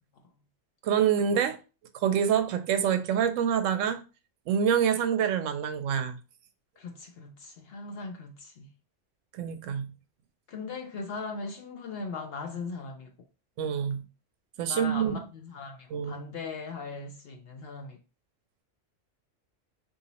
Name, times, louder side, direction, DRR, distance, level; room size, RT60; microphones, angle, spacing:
voice 1, 0.8-1.6 2.0-4.0 4.5-6.2 9.3-9.9 13.6-14.0 14.6-15.2 15.9-16.2, right 8 dB, 85° right, 0.9 m, -26 dB
voice 2, 6.8-8.7 10.5-13.1 14.7-18.0, left 4 dB, 65° left, 0.7 m, -39 dB
3.8 x 2.6 x 2.9 m
omnidirectional pair, 1.3 m